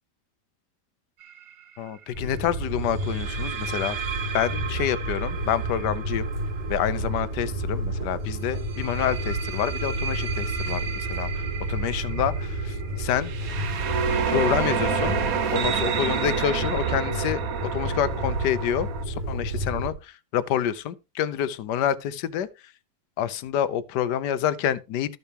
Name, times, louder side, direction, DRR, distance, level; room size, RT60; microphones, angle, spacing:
sound 1, 1.2-1.5 3.0-7.8 8.6-19.0, right 7 dB, 60° right, 1.3 m, -31 dB
voice 1, 1.8-4.0 4.3-6.2 6.7-13.3 14.3-15.2 15.5-17.4 17.7-22.5 23.2-25.2, left 10 dB, 80° left, 1.3 m, -28 dB
sound 2, 2.1-19.9, right 1 dB, 30° right, 2.5 m, -30 dB
13.5 x 6.8 x 2.9 m
omnidirectional pair, 1.8 m